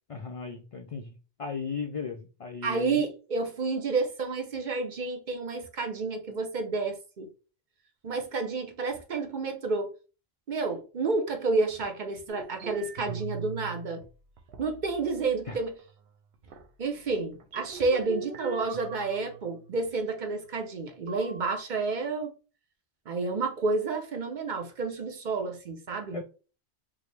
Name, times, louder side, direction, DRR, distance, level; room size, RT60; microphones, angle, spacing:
voice 1, 0.1-3.0 15.5-15.6 26.1-26.2, left 5 dB, 55° left, 0.3 m, -36 dB
voice 2, 2.6-7.3 8.0-9.9 10.5-14.0 14.6-15.7 16.8-22.3 23.1-26.2, right 3 dB, 50° right, 0.7 m, -30 dB
sound 1, 12.3-14.0 14.4-15.3 15.8-15.9 16.5-16.7 17.4-19.9 21.1-21.6, right 5 dB, 90° right, 0.9 m, -41 dB
4.7 x 2.0 x 3.2 m
omnidirectional pair, 1.1 m